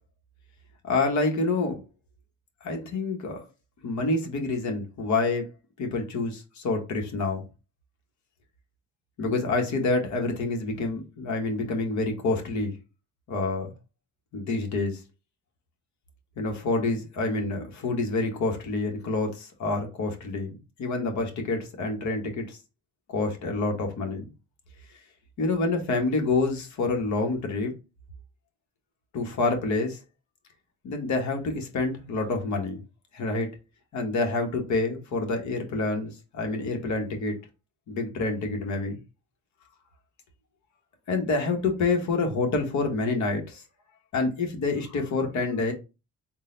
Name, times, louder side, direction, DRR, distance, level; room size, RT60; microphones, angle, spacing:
voice 1, 0.8-1.8 2.6-3.4 3.8-5.5 5.8-7.4 9.2-12.8 13.3-13.7 14.3-15.0 16.4-22.6 23.1-24.3 25.4-27.7 29.1-30.0 30.8-32.8 33.1-33.5 33.9-37.3 37.9-39.0 41.1-43.6 44.1-45.7, left 3 dB, 70° left, 1.2 m, -27 dB
3.8 x 2.2 x 3.8 m
cardioid pair, 90°, 30 cm